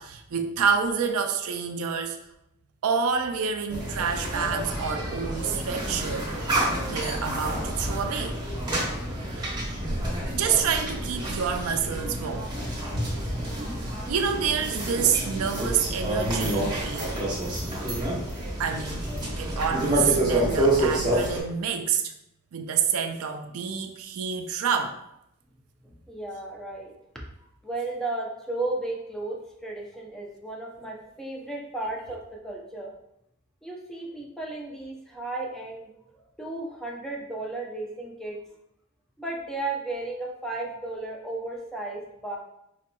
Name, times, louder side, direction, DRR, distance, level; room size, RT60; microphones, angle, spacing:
voice 1, 0.0-2.2 2.8-6.4 6.8-8.4 9.3-9.5 10.3-12.5 14.1-17.2 18.6-22.1 22.5-25.0, right 6 dB, 75° right, 6 dB, 0.4 m, -28 dB
sound 1, 3.7-21.4, right 1 dB, 20° right, 0.9 m, -28 dB
voice 2, 25.8-26.9 27.6-32.9 33.6-35.9 36.4-38.4 39.2-42.4, right 2 dB, 5° left, -2 dB, 0.5 m, -34 dB
4.9 x 2.8 x 2.2 m, 0.81 s
head